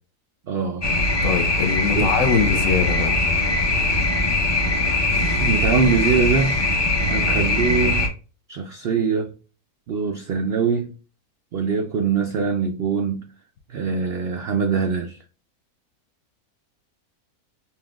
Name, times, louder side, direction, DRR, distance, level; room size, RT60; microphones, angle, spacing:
voice 1, 0.5-0.9 2.0-2.1 5.4-6.7 7.1-8.1 8.5-9.3 9.9-11.0 11.5-13.3 13.7-15.2, right 5 dB, 80° right, 0.5 m, -23 dB
sound 1, 0.8-8.1, left 2 dB, 30° left, 0.5 m, -21 dB
voice 2, 1.2-3.2, left 6 dB, 65° left, 0.8 m, -22 dB
5.6 x 2.3 x 2.3 m
omnidirectional pair, 1.6 m